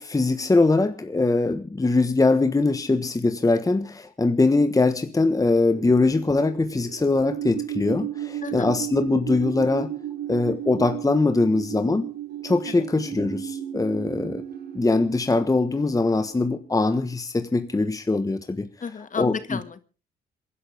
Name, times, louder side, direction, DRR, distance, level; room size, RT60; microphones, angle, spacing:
voice 1, 0.0-9.9 10.3-12.1 12.4-14.4 14.7-18.7 19.2-19.6, left 3 dB, 15° left, 9 dB, 1.3 m, -22 dB
sound 1, 5.7-16.6, right 11 dB, 55° right, 3.3 m, -34 dB
voice 2, 8.4-8.7 12.7-12.9 18.8-19.8, left 6 dB, 40° left, 12 dB, 1.9 m, -32 dB
27.0 x 11.0 x 3.5 m, 0.36 s
cardioid pair, 90°, 20 cm